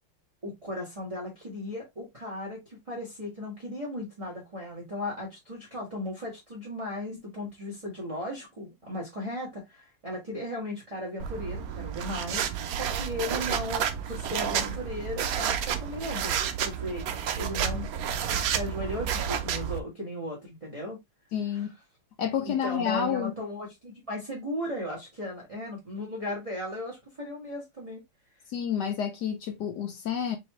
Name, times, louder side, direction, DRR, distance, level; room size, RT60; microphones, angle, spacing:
voice 1, 0.4-12.4 12.7-16.3 16.6-17.9 18.3-21.0 21.5-21.6 22.4-28.0, left 1 dB, 15° right, 1.6 m, -36 dB
sound 1, 11.2-19.8, right 8 dB, 90° right, 0.7 m, -30 dB
voice 2, 21.3-21.7 22.2-23.3 28.5-30.4, left 8 dB, 65° left, 1.1 m, -29 dB
4.9 x 3.1 x 3.0 m
omnidirectional pair, 2.3 m